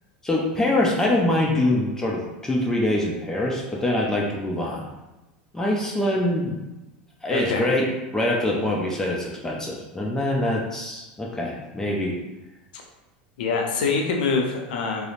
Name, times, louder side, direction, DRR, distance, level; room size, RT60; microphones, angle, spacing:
voice 1, 0.2-4.9 5.5-6.6 7.2-12.2, left 1 dB, 10° left, -2 dB, 0.4 m, -24 dB
voice 2, 7.3-7.7 13.4-15.1, left 4 dB, 80° left, 1 dB, 0.5 m, -24 dB
2.8 x 2.0 x 2.5 m, 1.0 s
supercardioid pair, 105°, 5 cm